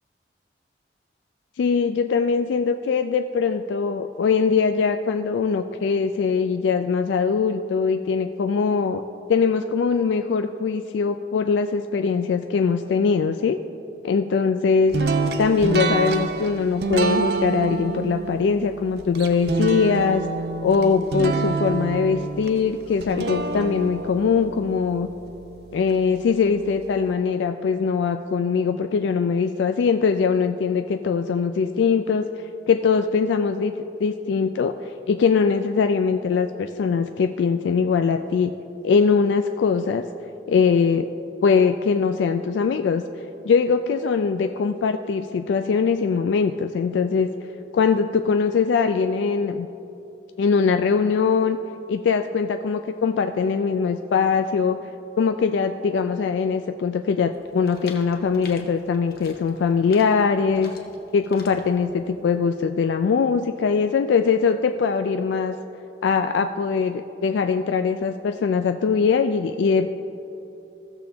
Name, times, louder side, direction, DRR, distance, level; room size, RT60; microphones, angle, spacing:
voice 1, 1.6-9.0 9.3-13.6 14.0-14.9 15.4-20.3 20.6-25.1 25.7-32.3 32.7-33.7 34.0-34.7 35.1-38.5 38.8-40.1 40.5-41.1 41.4-43.0 43.4-47.3 47.7-49.7 50.4-51.6 51.9-54.8 55.2-60.7 61.1-65.6 66.0-69.9, left 5 dB, 85° left, 7 dB, 0.3 m, -21 dB
sound 1, 14.9-26.0, right 4 dB, 60° right, 0.6 m, -27 dB
sound 2, 57.3-62.4, left 4 dB, 55° left, 1.0 m, -47 dB
15.5 x 6.8 x 3.4 m, 2.9 s
head